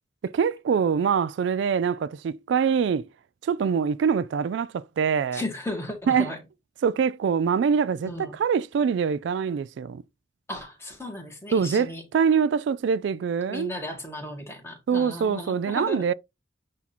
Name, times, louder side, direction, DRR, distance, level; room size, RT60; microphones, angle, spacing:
voice 1, 0.2-3.1 3.4-5.4 6.1-6.3 6.8-10.0 11.5-13.7 14.9-16.1, right 6 dB, 75° right, 0.3 m, -24 dB
voice 2, 5.3-6.4 8.0-8.3 10.5-12.0 13.5-16.0, left 1 dB, 15° left, 1.7 m, -35 dB
8.3 x 2.8 x 4.2 m
head